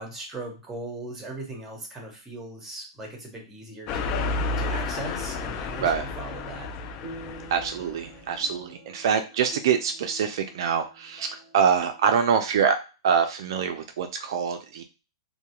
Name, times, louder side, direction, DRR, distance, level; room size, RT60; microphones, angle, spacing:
voice 1, 0.0-4.2 4.6-6.7, right 2 dB, 10° right, 1 dB, 1.0 m, -38 dB
sound 1, 3.9-8.0, left 3 dB, 35° left, 0.3 m, -31 dB
sound 2, 5.6-12.7, right 1 dB, 15° left, 1.2 m, -48 dB
voice 2, 7.5-12.8 13.0-14.8, right 7 dB, 65° right, 7 dB, 0.3 m, -25 dB
2.3 x 2.1 x 2.9 m, 0.32 s
hypercardioid pair, 140°, 3 cm